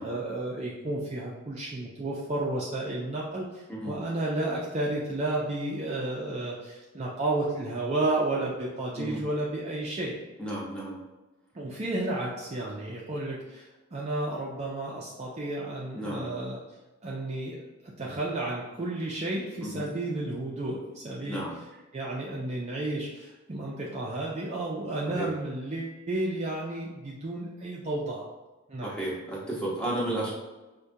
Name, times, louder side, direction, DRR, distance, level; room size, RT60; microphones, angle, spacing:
voice 1, 0.0-10.2 11.5-16.6 17.0-21.7 21.9-28.2 28.7-29.0 30.0-30.3, right 2 dB, 30° right, -4 dB, 0.4 m, -32 dB
voice 2, 10.4-10.9 15.9-16.3 19.6-19.8 21.2-21.6 25.2-25.3 28.8-30.3, right 1 dB, 5° left, -7 dB, 0.8 m, -33 dB
4.7 x 2.2 x 2.6 m, 1.1 s
head